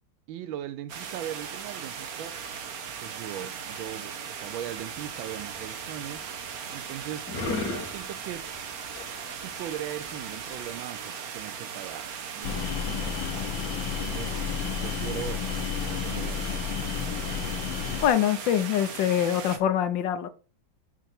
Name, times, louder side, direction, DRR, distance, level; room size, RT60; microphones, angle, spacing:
voice 1, 0.3-2.4 3.0-6.3 6.7-7.3 7.7-8.5 9.4-13.5 14.0-14.3 14.8-16.8, right 11 dB, 85° right, 1.4 m, -39 dB
sound 1, 0.9-19.6, right 7 dB, 55° right, 1.2 m, -38 dB
sound 2, 4.7-10.8, left 3 dB, 55° left, 2.5 m, -38 dB
sound 3, 12.4-18.1, left 8 dB, 90° left, 1.5 m, -31 dB
voice 2, 18.0-20.3, left 10 dB, 75° left, 1.4 m, -24 dB
6.7 x 5.9 x 4.3 m
omnidirectional pair, 2.1 m